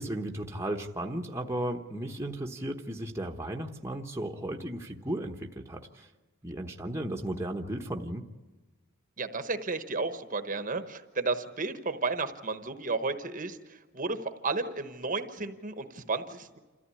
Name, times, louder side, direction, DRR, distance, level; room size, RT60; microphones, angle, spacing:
voice 1, 0.0-6.1 6.4-8.2, right 1 dB, 10° right, 1 dB, 1.1 m, -35 dB
voice 2, 9.2-16.6, right 3 dB, 35° right, 9 dB, 1.1 m, -33 dB
27.5 x 14.5 x 9.8 m, 1.3 s
head